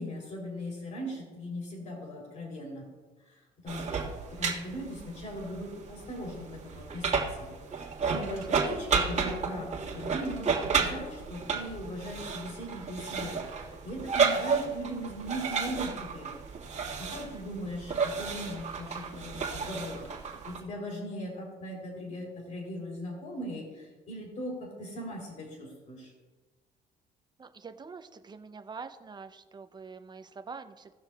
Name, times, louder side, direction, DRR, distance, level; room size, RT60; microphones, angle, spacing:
voice 1, 0.0-2.8 3.3-3.9 4.3-7.5 8.1-16.3 17.0-20.1 20.4-26.1, equal, 45° left, -1 dB, 3.1 m, -39 dB
sound 1, 3.7-20.6, right 5 dB, 45° right, 1.7 m, -32 dB
voice 2, 17.1-17.5 27.4-30.9, right 5 dB, 25° right, 8 dB, 0.6 m, -45 dB
17.5 x 6.3 x 2.4 m, 1.3 s
cardioid pair, 110°, 17 cm